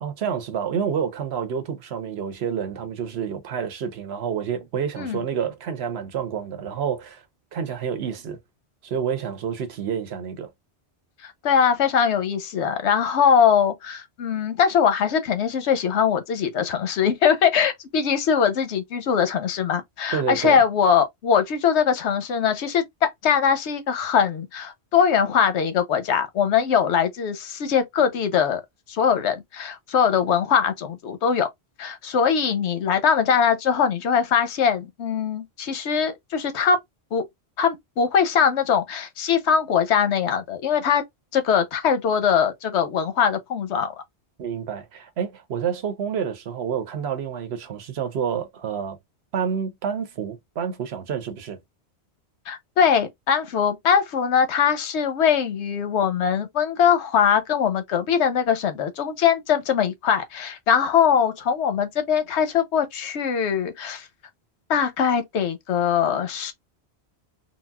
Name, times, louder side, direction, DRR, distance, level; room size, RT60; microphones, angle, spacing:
voice 1, 0.0-7.2 7.5-8.4 8.8-10.5 20.1-20.6 44.4-49.0 49.3-51.6, right 7 dB, 75° right, 1.0 m, -28 dB
voice 2, 11.2-22.8 23.2-28.6 28.9-31.5 31.8-36.8 37.1-37.3 37.6-41.0 41.3-43.9 52.5-64.1 64.7-66.5, left 7 dB, 85° left, 1.0 m, -21 dB
3.9 x 2.1 x 2.2 m
omnidirectional pair, 1.1 m